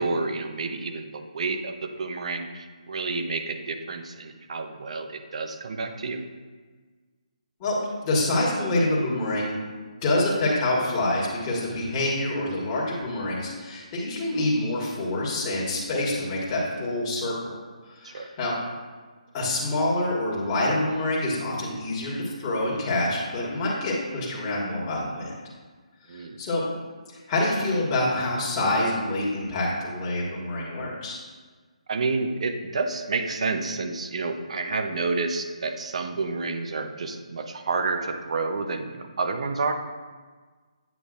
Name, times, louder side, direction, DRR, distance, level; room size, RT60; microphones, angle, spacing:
voice 1, 0.0-6.2 18.0-18.3 26.1-26.4 31.9-39.7, right 3 dB, 60° right, 7 dB, 0.6 m, -29 dB
voice 2, 8.0-9.6 10.0-17.5 17.8-18.5 19.3-25.3 26.1-26.6 27.3-31.2, left 1 dB, 25° left, -6 dB, 1.5 m, -26 dB
8.3 x 5.3 x 2.5 m, 1.4 s
hypercardioid pair, 155°, 4 cm